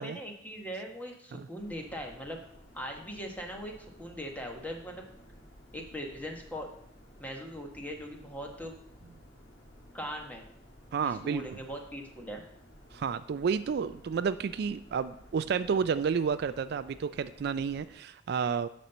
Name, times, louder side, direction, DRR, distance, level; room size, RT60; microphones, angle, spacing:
voice 1, 0.0-2.4 2.7-5.1 5.7-6.7 7.2-8.7 9.9-10.5 11.0-12.4, equal, 10° left, 2 dB, 1.3 m, -40 dB
sound 1, 1.6-17.9, equal, 60° left, 1.7 m, -55 dB
voice 2, 10.9-11.4 12.9-18.7, right 6 dB, 55° right, 13 dB, 0.3 m, -31 dB
9.4 x 4.3 x 6.7 m, 0.70 s
head